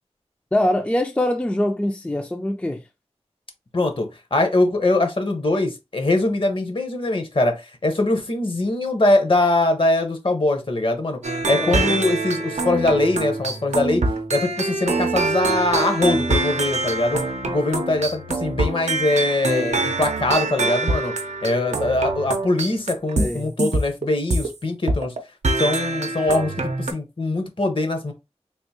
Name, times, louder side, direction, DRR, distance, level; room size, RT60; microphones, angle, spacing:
voice 1, 0.5-2.9 11.6-12.0 23.2-23.5, left 1 dB, 10° left, 0.3 m, -24 dB
voice 2, 3.7-11.2 11.5-14.0 14.3-21.1 21.4-25.1 25.6-28.1, left 2 dB, 50° left, 0.8 m, -22 dB
sound 1, 11.2-24.5 24.9-25.2 25.4-26.9, right 2 dB, 85° right, 0.5 m, -24 dB
3.5 x 2.5 x 2.8 m
wide cardioid pair, 70°, 11 cm